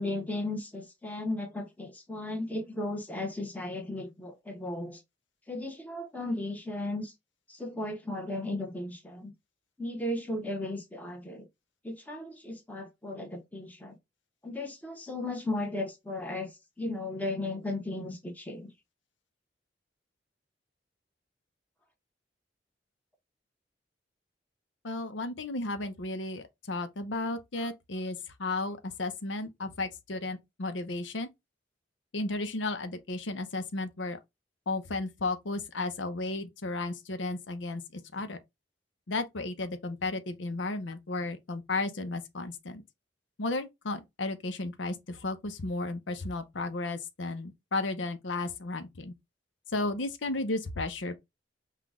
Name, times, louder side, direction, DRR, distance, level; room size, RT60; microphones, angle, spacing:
voice 1, 0.0-5.0 5.5-7.1 7.5-9.3 9.8-11.5 11.8-13.9 14.4-18.7, left 2 dB, 10° left, 1.1 m, -35 dB
voice 2, 24.8-31.3 32.1-34.2 34.7-38.4 39.1-42.8 43.4-49.1 49.7-51.2, left 2 dB, 85° left, 0.7 m, -34 dB
5.8 x 2.4 x 3.6 m
head